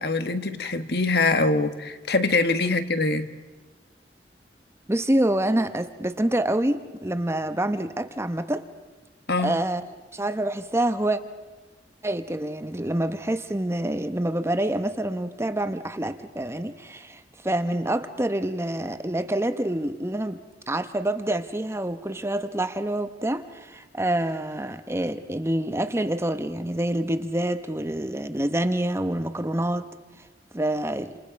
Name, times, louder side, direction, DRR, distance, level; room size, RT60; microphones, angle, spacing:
voice 1, 0.0-3.3 9.3-9.5, left 3 dB, 65° left, 1.6 m, -23 dB
voice 2, 4.9-8.6 9.4-9.8 10.1-11.2 12.0-20.4 20.7-29.9 30.5-31.1, right 1 dB, 15° right, 1.0 m, -27 dB
29.0 x 27.5 x 5.3 m
head